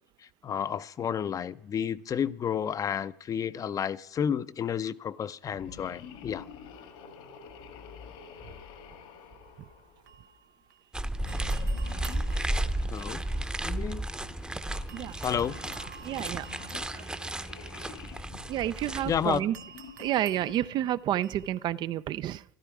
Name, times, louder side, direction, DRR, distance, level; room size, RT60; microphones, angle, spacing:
voice 1, 0.4-6.5 12.9-13.2 13.6-14.0 15.2-15.6 19.1-19.4, left 8 dB, 35° left, 0.6 m, -31 dB
sound 1, 5.4-10.3 11.1-13.5 14.1-20.9, left 7 dB, 70° left, 1.8 m, -48 dB
sound 2, 9.4-10.9 11.3-14.5 14.9-21.7, right 7 dB, 90° right, 0.9 m, -53 dB
sound 3, 10.9-19.4, right 1 dB, 10° right, 0.8 m, -33 dB
voice 2, 16.0-16.5 16.9-17.0 18.5-19.6 20.0-22.4, right 12 dB, 50° right, 0.5 m, -30 dB
13.5 x 12.5 x 4.8 m
hypercardioid pair, 80°, 10 cm